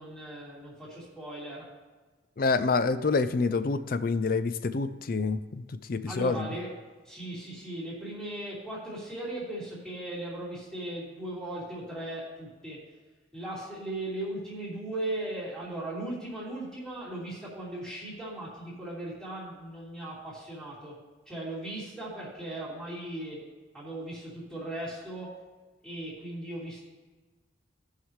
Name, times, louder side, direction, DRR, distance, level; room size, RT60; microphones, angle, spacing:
voice 1, 0.0-1.6 6.1-6.7 7.0-12.8 13.3-21.0 21.3-23.4 23.7-25.3 25.8-26.8, right 1 dB, 5° left, -9 dB, 2.9 m, -38 dB
voice 2, 2.4-6.5, left 4 dB, 50° left, 12 dB, 0.4 m, -27 dB
16.5 x 5.7 x 3.2 m, 1.3 s
head